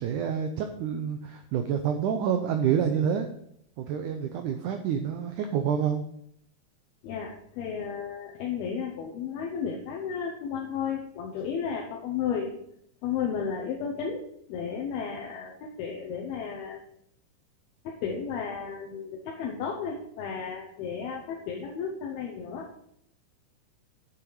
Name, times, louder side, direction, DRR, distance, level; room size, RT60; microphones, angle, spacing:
voice 1, 0.0-3.3 3.8-6.0, right 8 dB, 80° right, 6 dB, 1.8 m, -28 dB
voice 2, 7.0-12.6 13.0-16.8 17.8-22.7, left 6 dB, 85° left, 0 dB, 2.9 m, -33 dB
8.6 x 7.5 x 4.7 m, 0.72 s
omnidirectional pair, 4.3 m